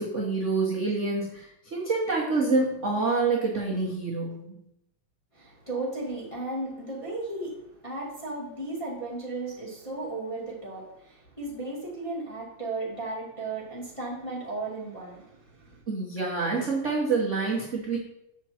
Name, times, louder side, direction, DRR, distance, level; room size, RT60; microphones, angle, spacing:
voice 1, 0.0-4.6 15.9-18.0, right 3 dB, 50° right, -4 dB, 0.8 m, -27 dB
voice 2, 5.3-15.8, right 2 dB, 15° left, -6 dB, 1.4 m, -35 dB
7.4 x 6.3 x 4.3 m, 0.81 s
omnidirectional pair, 3.4 m